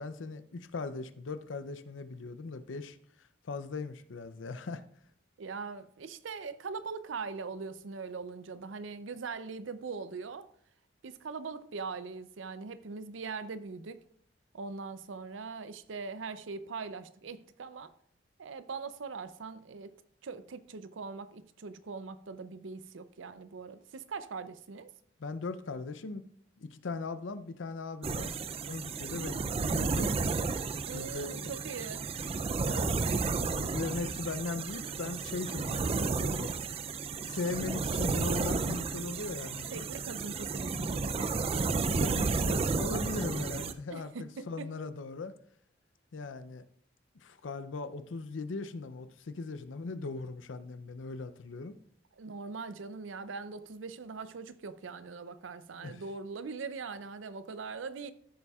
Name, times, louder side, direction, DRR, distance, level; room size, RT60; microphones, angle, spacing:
voice 1, 0.0-3.0 3.4-4.8 25.2-26.3 26.6-30.6 30.9-31.5 32.6-36.5 37.2-39.8 40.7-45.3 46.1-46.7 47.1-51.7 55.8-56.0, left 3 dB, 85° left, 0.6 m, -39 dB
voice 2, 5.4-10.5 11.0-14.0 14.5-17.9 18.4-19.9 20.2-24.9 30.9-32.0 39.7-41.3 43.9-44.8 52.2-58.1, right 4 dB, 90° right, 0.5 m, -41 dB
sound 1, 28.0-43.7, right 4 dB, 30° right, 0.4 m, -32 dB
14.5 x 6.9 x 2.4 m
head